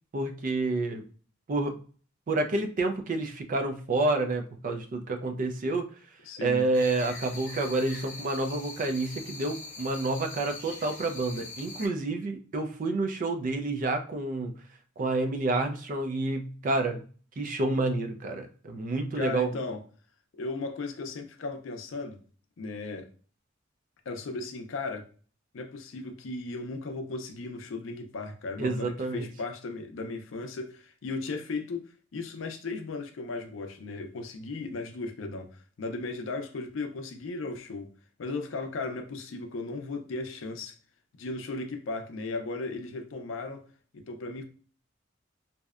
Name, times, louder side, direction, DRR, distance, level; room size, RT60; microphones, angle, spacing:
voice 1, 0.1-1.0 1.5-1.8 2.3-5.8 6.4-14.5 15.0-17.0 17.4-19.6 28.6-29.3, right 2 dB, 45° right, 0.4 m, -29 dB
voice 2, 6.3-6.6 19.1-19.8 20.3-22.2 22.6-23.1 24.1-25.1 25.5-35.5 35.8-37.9 38.2-40.8 41.1-43.6 43.9-44.4, left 3 dB, 90° left, 0.4 m, -36 dB
sound 1, 6.7-11.9, left 3 dB, 45° left, 0.7 m, -43 dB
2.7 x 2.1 x 2.3 m
head